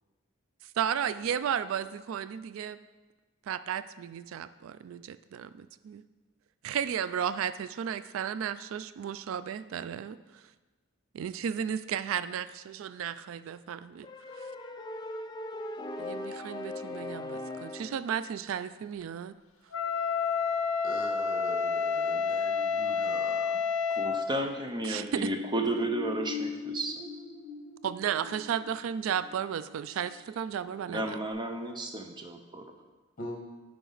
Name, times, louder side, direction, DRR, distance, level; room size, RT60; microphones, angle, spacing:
voice 1, 0.8-2.8 3.5-6.0 6.6-10.2 11.1-14.1 14.3-14.5 16.0-19.3 24.8-25.3 27.8-31.2, right 8 dB, 75° right, 14 dB, 0.3 m, -34 dB
sound 1, 14.0-18.1, left 1 dB, 20° left, 0.4 m, -39 dB
Wind instrument woodwind instrument, 19.7-24.3, left 5 dB, 85° left, 0.5 m, -29 dB
voice 2, 20.8-23.6 33.2-33.4, left 1 dB, 45° left, 1 dB, 1.3 m, -42 dB
voice 3, 23.9-27.0 30.9-32.0, right 1 dB, 20° right, 4 dB, 0.6 m, -32 dB
sound 2, 24.7-30.9 31.3-31.4, left 5 dB, 55° right, 2.3 m, -42 dB
9.2 x 5.0 x 3.9 m, 1.2 s
head